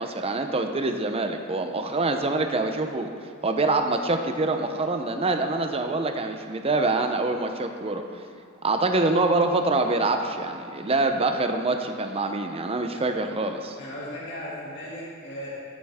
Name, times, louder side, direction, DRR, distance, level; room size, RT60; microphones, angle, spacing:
voice 1, 0.0-3.1 3.4-8.0 8.6-13.8, right 2 dB, 25° right, 5 dB, 0.7 m, -25 dB
voice 2, 13.8-15.6, left 1 dB, 55° left, -7 dB, 2.3 m, -36 dB
15.5 x 7.6 x 3.6 m, 2.2 s
head